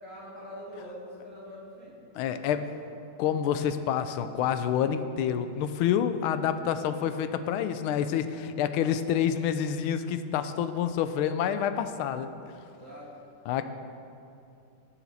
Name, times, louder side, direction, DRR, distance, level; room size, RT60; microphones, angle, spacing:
voice 1, 0.0-2.6 6.8-7.0 12.7-13.1, equal, 35° right, -7 dB, 2.6 m, -44 dB
voice 2, 2.1-2.6 3.2-12.3 13.5-13.6, left 9 dB, 80° left, 10 dB, 1.4 m, -28 dB
18.0 x 7.2 x 4.1 m, 2.5 s
omnidirectional pair, 2.4 m